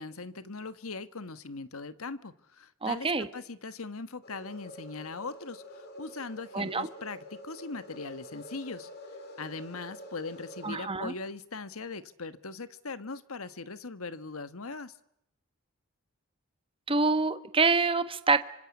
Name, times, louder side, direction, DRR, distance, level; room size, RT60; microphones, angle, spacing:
voice 1, 0.0-8.9 9.4-15.0, left 3 dB, 70° left, 13 dB, 1.5 m, -40 dB
voice 2, 2.8-3.3 6.5-6.9 10.6-11.1 16.9-18.4, right 4 dB, 25° right, 11 dB, 1.3 m, -26 dB
sound 1, 4.2-10.7, left 1 dB, 50° left, 5.2 m, -47 dB
26.0 x 25.5 x 8.4 m, 0.81 s
head